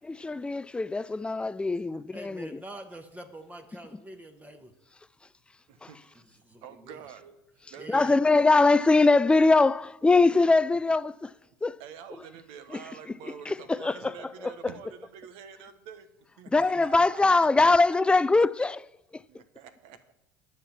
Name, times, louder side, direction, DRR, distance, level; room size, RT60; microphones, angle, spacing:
voice 1, 0.1-2.6 5.8-5.9 7.9-11.3 11.6-11.8 12.7-12.8 13.5-14.5 16.5-18.8 19.1-19.2, left 3 dB, 10° left, 0.4 m, -22 dB
voice 2, 2.1-4.7 6.1-7.0 7.8-8.2 16.6-17.1, right 1 dB, 15° right, 1.3 m, -46 dB
voice 3, 5.7-6.2 6.6-7.3 7.7-8.0 11.8-16.1 16.4-17.7 18.1-18.2 19.3-20.1, right 8 dB, 65° right, 1.2 m, -47 dB
9.9 x 5.8 x 7.2 m
hypercardioid pair, 75°, 10 cm